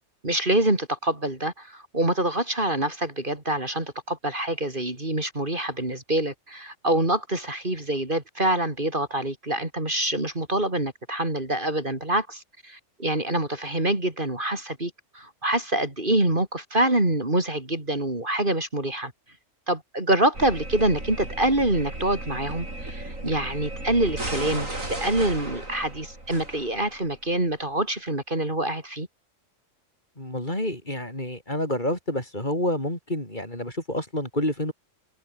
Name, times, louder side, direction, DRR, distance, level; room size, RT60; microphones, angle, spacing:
voice 1, 0.2-19.1 19.7-29.1, right 1 dB, 40° right, 4.4 m, -26 dB
sound 1, 20.3-27.2, right 1 dB, 90° right, 8.1 m, -35 dB
voice 2, 30.2-34.7, left 1 dB, 35° left, 7.1 m, -28 dB
omnidirectional pair, 1.3 m